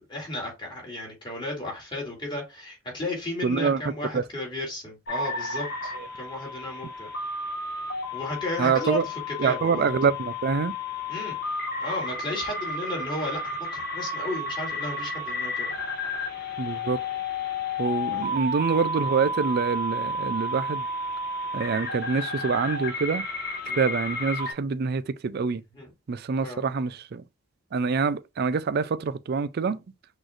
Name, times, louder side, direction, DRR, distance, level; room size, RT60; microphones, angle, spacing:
voice 1, 0.0-5.9 6.2-7.1 8.1-9.9 11.1-11.4 11.8-15.7 18.1-18.4 23.6-23.8 25.7-25.9 26.4-26.6, left 1 dB, 20° left, 2.4 m, -34 dB
voice 2, 3.4-3.8 4.1-4.2 5.9-6.1 8.6-9.0 9.4-10.7 16.6-17.0 17.8-20.9 21.5-23.3 23.8-25.6 26.1-27.2 27.7-29.8, right 5 dB, 50° right, 0.4 m, -26 dB
sound 1, 5.1-24.5, left 2 dB, 45° left, 1.7 m, -32 dB
6.2 x 3.1 x 2.5 m
head